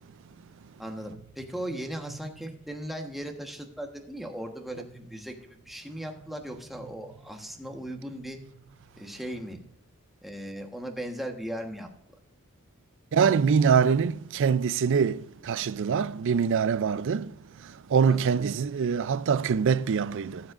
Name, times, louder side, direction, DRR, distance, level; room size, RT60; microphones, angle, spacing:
voice 1, 0.8-5.4 5.7-8.4 8.9-9.6 10.2-11.9 18.1-18.4, right 1 dB, ahead, 1.2 m, -37 dB
voice 2, 13.1-15.2 15.5-17.3 17.9-20.4, right 6 dB, 60° right, 0.4 m, -24 dB
17.5 x 7.3 x 2.5 m
head